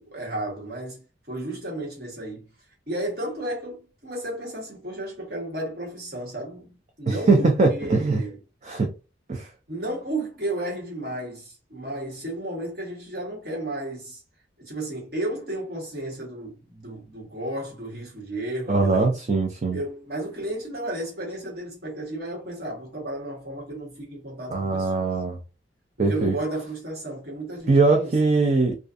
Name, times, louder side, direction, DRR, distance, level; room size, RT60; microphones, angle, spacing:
voice 1, 0.0-2.4 2.9-8.4 9.7-14.2 14.6-19.1 19.7-25.1 26.0-28.1, right 1 dB, 55° right, 1.2 m, -33 dB
voice 2, 7.1-8.2 8.6-8.9 9.3-9.5 18.7-19.8 24.5-25.4 26.0-26.3 27.7-28.8, right 3 dB, 40° right, 0.4 m, -21 dB
2.4 x 2.4 x 2.4 m
head